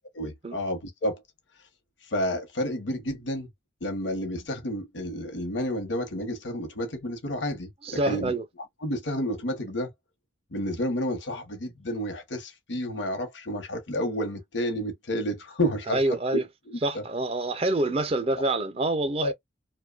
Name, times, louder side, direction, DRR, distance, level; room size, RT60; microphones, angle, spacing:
voice 1, 0.1-1.2 2.1-3.5 3.8-8.4 8.8-9.9 10.5-17.0 19.2-19.3, equal, 80° left, 0.9 m, -30 dB
voice 2, 7.9-8.4 15.9-16.4 16.8-19.3, right 2 dB, 35° right, 0.6 m, -26 dB
2.7 x 2.2 x 2.2 m
head